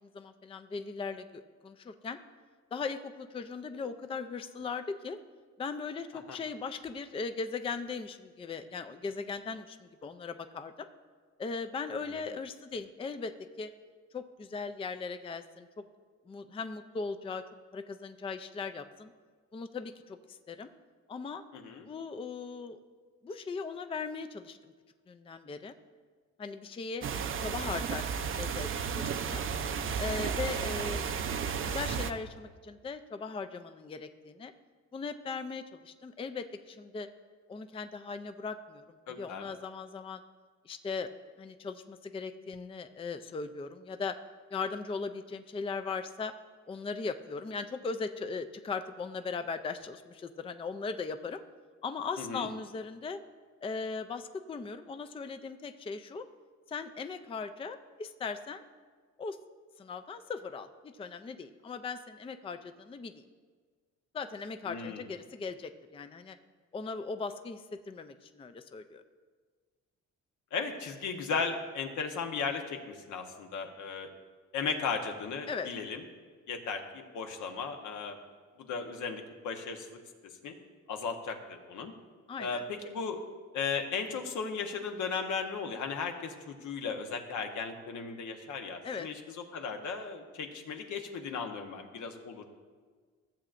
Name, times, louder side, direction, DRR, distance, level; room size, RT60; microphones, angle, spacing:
voice 1, 0.1-2.2 2.7-5.2 5.6-10.9 11.4-13.7 14.1-15.7 16.3-17.4 17.7-19.1 19.5-20.7 21.1-21.4 21.9-22.8 23.2-24.7 25.1-25.7 26.4-27.0 27.4-29.4 30.0-31.1 31.6-34.5 34.9-37.1 37.5-40.2 40.6-41.1 41.4-44.2 44.5-46.3 46.7-51.4 51.8-53.2 53.6-56.2 56.7-58.6 59.2-59.4 59.8-63.2 64.1-66.4 66.7-69.0 75.5-75.7 82.3-82.6 88.8-89.1, left 4 dB, 20° left, 9 dB, 0.4 m, -38 dB
voice 2, 21.5-21.9 39.1-39.5 52.2-52.5 64.7-65.0 70.5-74.1 74.5-76.0 76.5-78.2 78.6-80.0 80.4-80.5 80.9-81.9 82.4-83.2 83.5-92.5, left 5 dB, 75° left, 4 dB, 1.1 m, -36 dB
sound 1, 27.0-32.1, right 6 dB, 45° right, 0.6 m, -33 dB
15.0 x 7.4 x 2.5 m, 1.5 s
cardioid pair, 90°, 30 cm